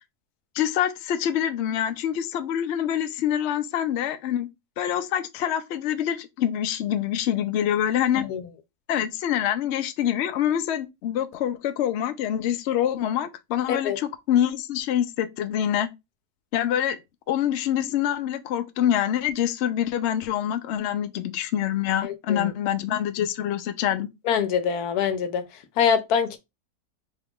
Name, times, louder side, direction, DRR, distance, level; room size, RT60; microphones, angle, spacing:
voice 1, 0.5-4.5 4.8-8.3 8.9-15.9 16.5-17.0 17.3-24.1, left 10 dB, 65° left, 0.7 m, -25 dB
voice 2, 22.0-22.5 24.3-25.4 25.8-26.4, left 7 dB, 80° left, 1.2 m, -24 dB
3.8 x 2.4 x 3.5 m
omnidirectional pair, 1.6 m